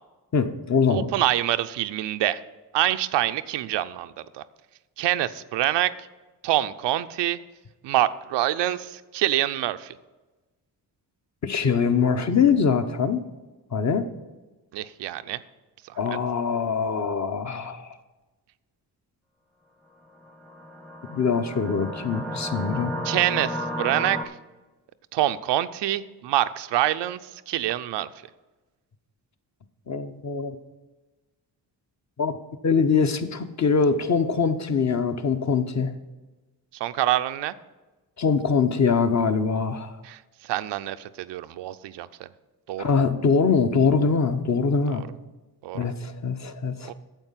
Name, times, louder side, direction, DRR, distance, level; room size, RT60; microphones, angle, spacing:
voice 1, 0.3-1.1 11.4-13.2 13.7-14.1 16.0-18.0 21.1-22.9 29.9-30.6 32.2-32.3 32.6-35.9 38.2-39.9 42.8-45.1 45.7-46.9, left 5 dB, 40° left, 8 dB, 0.8 m, -23 dB
voice 2, 0.9-2.4 2.7-4.4 5.0-5.9 6.4-7.4 7.8-10.0 14.7-15.4 15.9-16.0 23.0-24.2 25.1-27.2 27.5-28.1 36.8-37.5 40.0-40.2 40.5-42.3 42.7-42.9 45.0-45.1 45.6-45.9 46.9-47.0, right 13 dB, 90° right, 12 dB, 0.5 m, -26 dB
sound 1, 20.2-24.2, equal, 5° left, 0.7 m, -33 dB
9.1 x 7.4 x 5.7 m, 1.2 s
cardioid pair, 70°, 41 cm